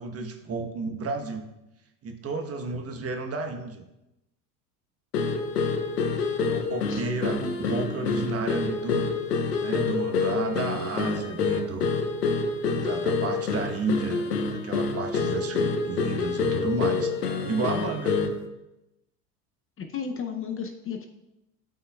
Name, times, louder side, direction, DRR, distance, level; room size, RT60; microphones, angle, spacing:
voice 1, 0.0-1.4 2.0-3.8 6.5-9.1 9.6-11.9 12.7-14.3 14.6-18.2, right 3 dB, 30° right, 4 dB, 1.1 m, -32 dB
sound 1, 5.1-18.5, left 4 dB, 90° left, 1.0 m, -27 dB
voice 2, 19.8-21.1, left 6 dB, 30° left, 5 dB, 0.7 m, -34 dB
11.5 x 5.5 x 2.3 m, 0.92 s
hypercardioid pair, 85°, 46 cm